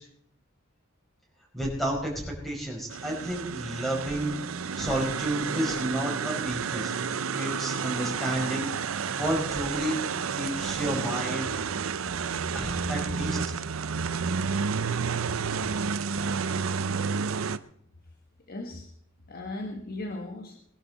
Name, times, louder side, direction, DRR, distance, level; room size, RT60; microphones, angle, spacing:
voice 1, 1.5-4.4 4.8-6.9 7.3-10.0 10.3-11.5 12.5-13.4, right 1 dB, ahead, -2 dB, 5.5 m, -31 dB
sound 1, 2.9-17.6, right 6 dB, 80° right, 0.6 m, -31 dB
voice 2, 18.5-18.9 19.3-20.6, left 2 dB, 50° left, 3 dB, 1.5 m, -37 dB
21.5 x 11.5 x 4.1 m, 0.67 s
head